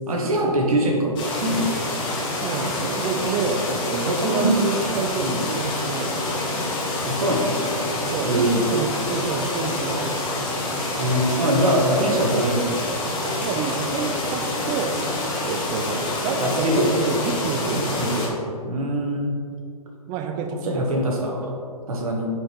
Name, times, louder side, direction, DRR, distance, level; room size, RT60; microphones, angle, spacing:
voice 1, 0.1-1.7 4.1-4.6 5.2-5.4 7.0-7.6 8.2-8.6 11.0-12.8 16.4-17.0 17.7-18.3 18.6-19.4 20.6-21.5 21.9-22.3, right 1 dB, 65° right, 0 dB, 1.7 m, -23 dB
sound 1, 1.2-18.3, left 2 dB, 25° left, 1.4 m, -27 dB
voice 2, 2.4-6.2 8.1-10.3 12.0-12.2 13.2-15.0 15.4-17.9 20.1-21.1 21.9-22.0, right 5 dB, 20° right, 5 dB, 0.5 m, -28 dB
8.6 x 5.0 x 3.2 m, 2.3 s
hypercardioid pair, 135°, 20 cm